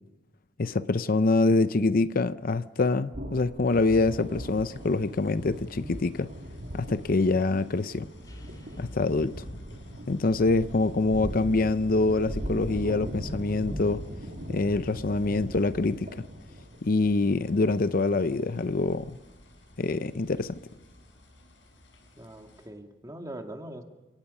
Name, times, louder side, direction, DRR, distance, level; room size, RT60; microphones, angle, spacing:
voice 1, 0.6-6.3 6.7-8.1 8.8-9.3 10.1-14.0 14.5-16.3 16.8-19.2 19.8-20.6, left 3 dB, 50° left, 0.6 m, -25 dB
sound 1, 3.1-19.3, equal, 55° right, 2.0 m, -40 dB
sound 2, 3.7-22.7, equal, 80° left, 7.0 m, -50 dB
sound 3, 8.2-12.3, equal, 20° left, 3.2 m, -50 dB
voice 2, 22.2-23.8, right 1 dB, 20° right, 2.1 m, -41 dB
30.0 x 18.5 x 5.5 m
head